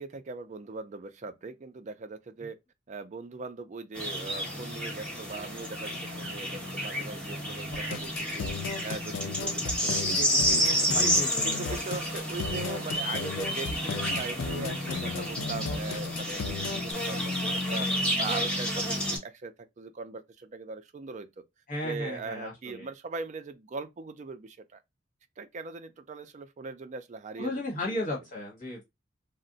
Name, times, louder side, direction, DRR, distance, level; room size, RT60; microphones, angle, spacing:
voice 1, 0.0-2.6 2.9-8.5 8.8-11.1 11.4-17.9 18.2-21.4 21.8-24.8 25.4-28.0, right 4 dB, 40° right, 0.4 m, -40 dB
sound 1, 3.9-19.2, equal, 5° left, 1.3 m, -30 dB
sound 2, 7.7-16.9, left 5 dB, 75° left, 0.4 m, -35 dB
voice 2, 10.8-11.6 21.7-22.9 27.4-28.8, left 1 dB, 45° left, 1.2 m, -35 dB
2.5 x 2.1 x 3.8 m
head